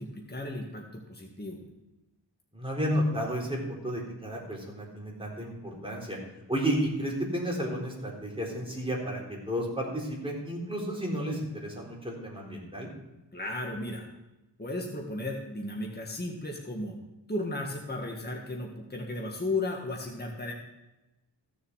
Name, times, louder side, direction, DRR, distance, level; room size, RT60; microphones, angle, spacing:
voice 1, 0.0-1.6 13.3-14.1 14.6-17.0 17.3-20.5, left 2 dB, 20° left, 0 dB, 1.7 m, -35 dB
voice 2, 2.5-6.2 6.5-12.9, equal, 10° right, -3 dB, 4.0 m, -32 dB
15.0 x 7.2 x 4.7 m, 1.0 s
wide cardioid pair, 65°, 45 cm